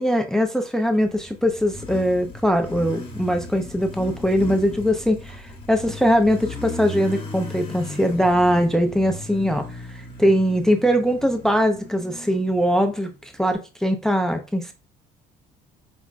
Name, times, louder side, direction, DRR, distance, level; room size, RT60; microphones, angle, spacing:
voice 1, 0.0-14.7, equal, 5° left, 5 dB, 0.4 m, -21 dB
Motorcycle, 0.8-13.5, left 2 dB, 30° left, 1.0 m, -37 dB
4.9 x 2.1 x 2.4 m, 0.31 s
cardioid pair, 110°, 17 cm